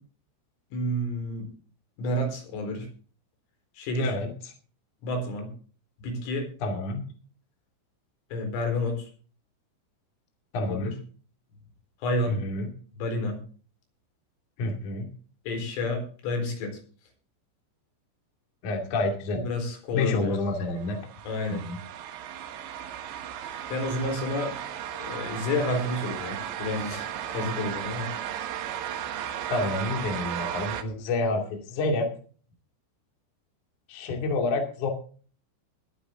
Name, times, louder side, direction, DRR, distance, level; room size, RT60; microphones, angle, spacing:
voice 1, 0.7-1.4 2.0-2.9 3.8-4.1 5.0-5.5 6.0-6.5 8.3-9.1 10.7-10.8 12.0-12.4 13.0-13.4 15.5-16.8 19.4-20.4 21.2-21.6 23.7-24.5 25.0-28.1, left 1 dB, 75° left, 3 dB, 6.8 m, -30 dB
voice 2, 3.9-4.5 6.6-7.0 10.5-10.9 12.3-12.7 14.6-15.1 18.6-19.4 19.9-21.0 21.5-21.8 29.5-32.1 33.9-34.9, left 2 dB, 45° left, 2 dB, 3.3 m, -28 dB
sound 1, 20.8-30.8, right 10 dB, 70° right, 3.2 m, -35 dB
21.5 x 8.9 x 3.8 m, 0.41 s
omnidirectional pair, 5.9 m